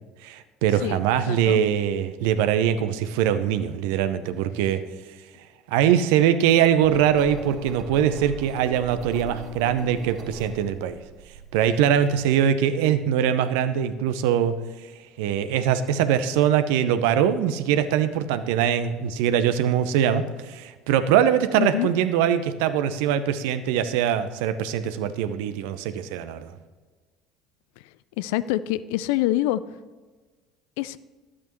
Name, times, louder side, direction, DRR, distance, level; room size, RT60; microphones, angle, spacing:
voice 1, 0.2-4.8 5.7-11.0 11.5-14.5 15.2-26.5, right 9 dB, 70° right, 11 dB, 0.6 m, -22 dB
voice 2, 1.3-1.6 21.6-21.9 28.2-29.6 30.8-31.0, left 15 dB, 70° left, 16 dB, 0.3 m, -25 dB
Engine, 6.8-12.3, right 5 dB, 50° right, 3.2 m, -41 dB
12.0 x 8.5 x 3.1 m, 1.4 s
hypercardioid pair, 65°, 0 cm